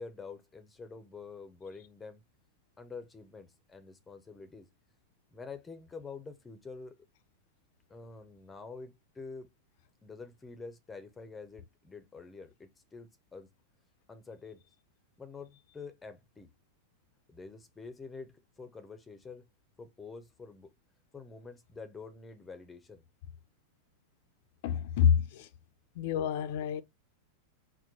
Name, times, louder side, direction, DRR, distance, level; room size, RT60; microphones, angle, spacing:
voice 1, 0.0-2.2 2.8-4.7 5.3-7.0 7.9-9.5 10.0-13.5 14.1-14.6 15.2-16.5 17.3-19.5 19.8-20.7 21.1-23.0, left 4 dB, 15° left, 0.7 m, -47 dB
voice 2, 24.6-25.5 26.0-26.8, left 8 dB, 60° left, 0.6 m, -27 dB
4.4 x 2.2 x 4.5 m
hypercardioid pair, 100°, 0 cm